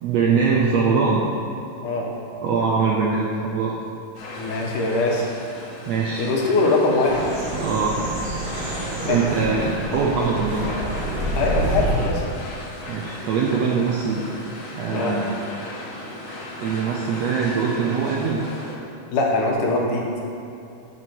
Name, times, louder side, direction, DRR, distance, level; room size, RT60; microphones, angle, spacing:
voice 1, 0.0-1.2 2.4-3.7 5.9-6.3 7.6-8.0 9.0-10.7 12.9-14.2 14.7-15.3 16.3-18.4, right 5 dB, 75° right, -3 dB, 1.5 m, -22 dB
sound 1, 4.1-18.8, left 1 dB, 60° left, 2.0 m, -37 dB
voice 2, 4.4-5.3 6.2-7.2 9.1-9.3 11.4-12.2 14.9-15.2 19.1-20.1, left 3 dB, 75° left, -1 dB, 2.5 m, -22 dB
sound 2, 7.0-12.1, right 2 dB, 35° right, 1.0 m, -27 dB
6.9 x 5.2 x 7.1 m, 2.8 s
omnidirectional pair, 3.8 m